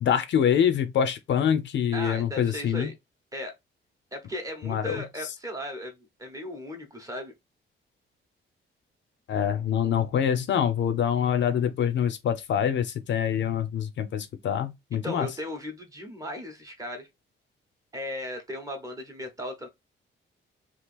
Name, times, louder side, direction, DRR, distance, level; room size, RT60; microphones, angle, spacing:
voice 1, 0.0-2.9 4.6-5.0 9.3-15.3, left 8 dB, 60° left, 0.5 m, -25 dB
voice 2, 1.9-2.9 3.3-3.5 4.1-5.9 6.2-7.3 15.0-17.1 17.9-19.7, left 1 dB, 15° right, 0.8 m, -36 dB
2.9 x 2.4 x 3.3 m
wide cardioid pair, 160°, 21 cm